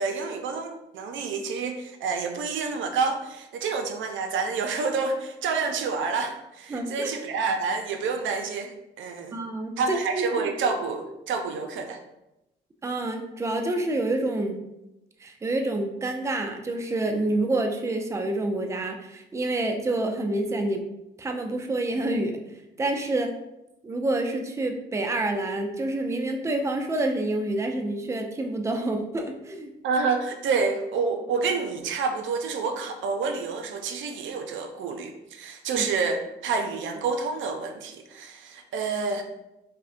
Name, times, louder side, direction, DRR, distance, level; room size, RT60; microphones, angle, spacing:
voice 1, 0.0-9.4 9.8-12.0 29.8-39.2, right 4 dB, 75° right, 6 dB, 0.5 m, -28 dB
voice 2, 6.7-7.1 9.3-10.5 12.8-14.6 15.2-20.8 21.2-22.4 22.8-23.3 23.8-29.7 35.7-35.9, right 2 dB, 15° right, 4 dB, 0.4 m, -28 dB
5.1 x 2.1 x 2.5 m, 0.91 s
cardioid pair, 90°, 20 cm